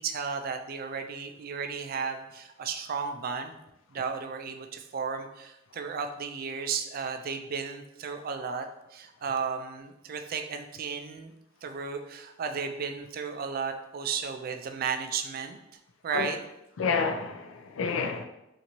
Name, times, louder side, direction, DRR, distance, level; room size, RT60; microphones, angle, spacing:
voice 1, 0.0-3.6 3.9-11.3 11.6-15.6 16.0-16.4, right 5 dB, 50° right, 6 dB, 0.3 m, -34 dB
voice 2, 16.8-18.3, left 5 dB, 80° left, 5 dB, 0.4 m, -29 dB
4.0 x 2.5 x 2.9 m, 0.89 s
head